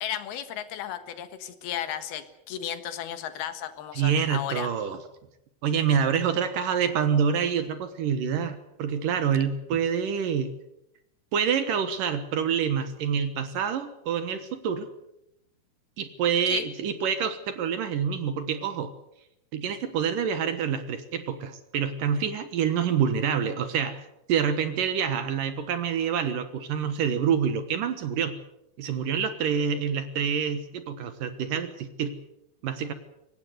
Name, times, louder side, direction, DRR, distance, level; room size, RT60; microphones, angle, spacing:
voice 1, 0.0-4.7 16.5-16.7, left 10 dB, 75° left, 10 dB, 3.5 m, -34 dB
voice 2, 3.9-5.0 5.6-10.5 11.3-14.9 16.0-18.9 19.5-24.0 24.3-28.4 28.8-32.2 32.6-32.9, right 7 dB, 65° right, 10 dB, 2.7 m, -27 dB
24.0 x 19.0 x 8.0 m, 0.83 s
omnidirectional pair, 4.5 m